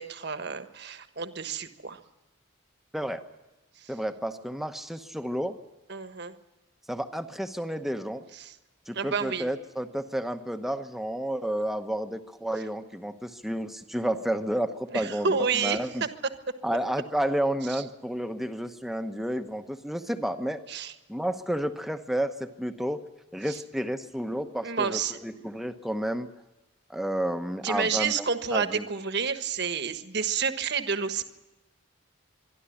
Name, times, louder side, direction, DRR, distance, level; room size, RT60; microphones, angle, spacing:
voice 1, 0.0-2.0 3.8-3.9 5.9-6.3 8.4-8.5 8.9-9.6 14.9-15.8 17.7-17.8 20.7-20.9 24.6-25.2 27.6-31.2, right 5 dB, 55° right, 9 dB, 1.4 m, -29 dB
voice 2, 3.9-5.6 6.9-8.2 8.9-16.0 16.6-20.6 21.1-23.0 23.3-26.3 26.9-28.2 28.5-28.9, right 1 dB, ahead, 8 dB, 0.9 m, -31 dB
25.0 x 11.5 x 9.9 m, 1.1 s
head